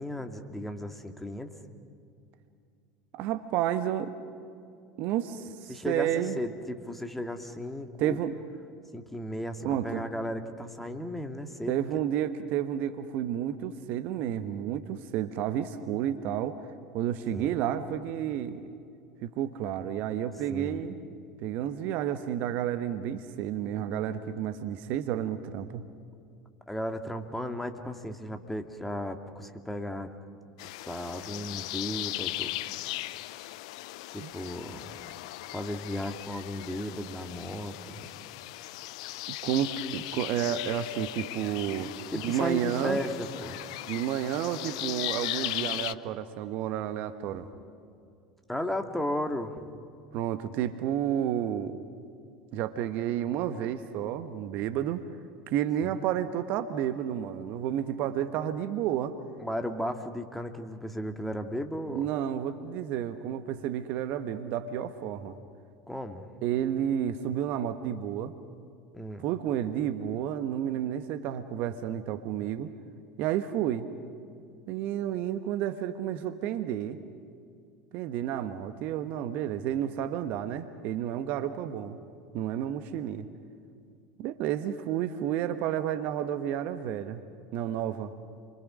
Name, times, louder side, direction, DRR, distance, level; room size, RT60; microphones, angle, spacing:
voice 1, 0.0-1.5 5.7-8.2 8.9-11.8 17.3-17.6 20.5-20.8 26.7-30.1 30.9-32.6 34.1-34.9 35.5-38.1 42.1-43.6 48.5-49.6 55.8-56.0 59.4-62.1 65.9-66.3 68.9-69.2, left 1 dB, 5° left, 5 dB, 2.1 m, -35 dB
voice 2, 3.1-4.1 5.0-6.4 8.0-8.3 9.6-10.0 11.7-16.6 16.9-18.7 19.2-21.0 21.4-25.8 34.2-34.3 39.4-43.0 43.9-47.5 50.1-51.7 52.5-55.0 55.5-59.2 61.9-65.3 66.4-68.3 69.2-72.7 73.2-73.9 74.7-77.0 77.9-82.0 82.3-83.3 84.2-87.2 87.5-88.1, right 10 dB, 55° right, 10 dB, 1.2 m, -31 dB
sound 1, 30.6-45.9, left 17 dB, 65° left, 0.6 m, -38 dB
29.5 x 24.0 x 6.3 m, 2.4 s
figure-of-eight pair, 75°, 4 cm